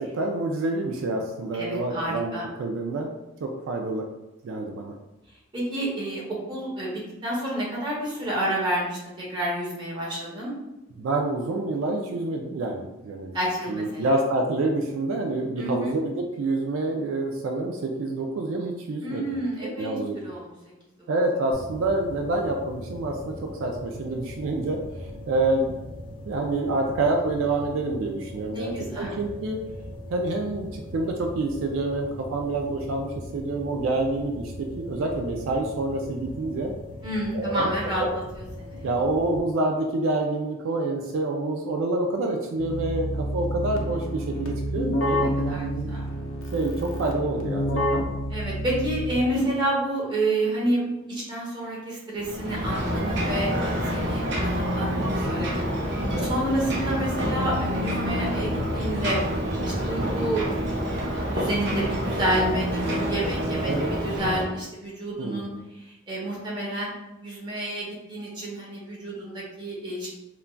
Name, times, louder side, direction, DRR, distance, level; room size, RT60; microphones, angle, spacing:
voice 1, 0.0-3.1 3.4-4.0 4.4-4.9 11.0-13.3 13.7-20.2 21.1-25.8 26.3-29.6 30.1-36.7 37.3-38.1 38.8-45.9 46.5-47.6 47.9-48.0 49.2-49.5 54.9-55.3 56.1-56.3 60.0-60.2 63.6-63.9 65.2-65.6, right 2 dB, 70° right, 2 dB, 0.3 m, -27 dB
voice 2, 1.5-2.4 5.5-10.5 13.3-14.1 15.6-15.9 19.0-20.0 20.2-20.5 28.5-29.1 37.0-38.0 38.6-38.9 45.5-46.1 48.3-59.2 59.6-60.4 61.3-66.9 67.2-70.1, right 1 dB, 20° right, -5 dB, 0.9 m, -29 dB
sound 1, 21.5-39.4, left 1 dB, 25° left, 0.4 m, -40 dB
Keyboard (musical), 42.6-49.4, equal, 75° left, 0.5 m, -28 dB
Ocean, 52.1-64.4, equal, 55° right, 0.7 m, -27 dB
3.7 x 2.2 x 2.2 m, 1.0 s
head